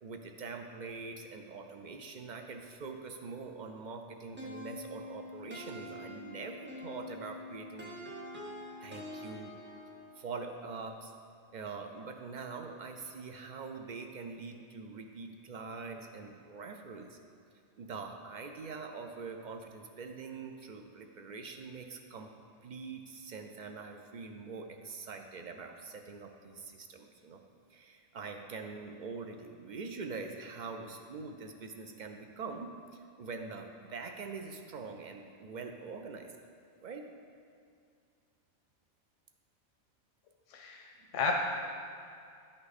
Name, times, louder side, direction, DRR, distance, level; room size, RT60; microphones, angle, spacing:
voice 1, 0.0-7.9 8.8-9.5 10.2-11.1 11.5-17.2 17.8-22.3 22.6-27.4 27.7-36.3 36.8-37.1 41.0-41.1, right 4 dB, 55° right, 4 dB, 0.5 m, -44 dB
sound 1, 4.4-10.2, left 1 dB, 10° right, 0.6 m, -45 dB
voice 2, 40.5-41.4, left 4 dB, 85° left, 1 dB, 1.0 m, -33 dB
10.0 x 5.4 x 4.1 m, 2.4 s
omnidirectional pair, 1.2 m